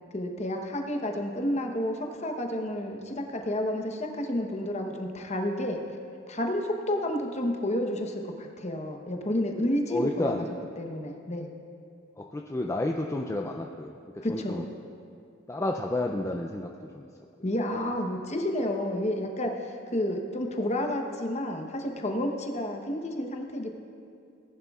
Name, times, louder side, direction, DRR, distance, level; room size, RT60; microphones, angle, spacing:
voice 1, 0.1-5.8 6.3-10.5 10.8-11.5 14.2-14.6 17.4-23.8, left 1 dB, 35° left, 3 dB, 0.9 m, -30 dB
voice 2, 9.9-10.5 12.2-14.6 15.5-16.7 16.9-17.1, left 2 dB, 15° left, 2 dB, 0.4 m, -31 dB
18.5 x 11.0 x 2.4 m, 2.5 s
head